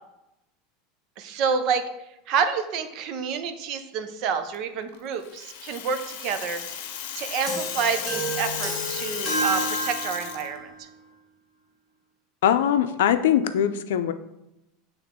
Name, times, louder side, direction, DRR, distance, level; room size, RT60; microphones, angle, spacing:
voice 1, 1.2-1.9 2.3-6.6 7.1-10.7, right 6 dB, 45° right, 8 dB, 0.7 m, -28 dB
Rattle (instrument), 5.2-10.5, left 9 dB, 60° left, 0.8 m, -34 dB
sound 1, 7.5-10.7, right 2 dB, 10° right, 2.4 m, -30 dB
voice 2, 12.4-14.1, left 10 dB, 85° left, 10 dB, 0.5 m, -21 dB
8.8 x 3.5 x 3.7 m, 0.89 s
supercardioid pair, 150°, 0 cm